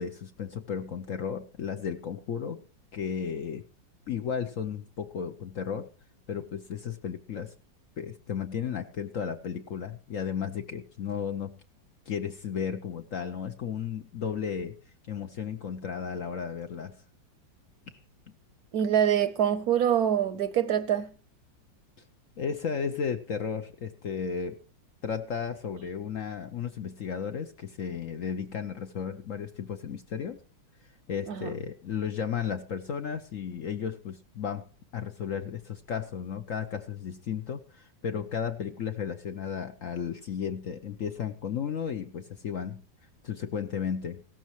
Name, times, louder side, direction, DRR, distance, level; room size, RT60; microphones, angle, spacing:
voice 1, 0.0-2.6 2.9-3.6 4.1-5.9 6.3-7.5 8.0-11.6 12.1-14.8 15.1-16.9 22.4-24.6 25.0-30.4 31.1-34.7 34.9-42.8 43.2-44.2, left 7 dB, 55° left, 0.9 m, -34 dB
voice 2, 18.7-21.1 31.3-31.5, right 9 dB, 65° right, 1.1 m, -25 dB
16.5 x 14.0 x 3.0 m
omnidirectional pair, 2.0 m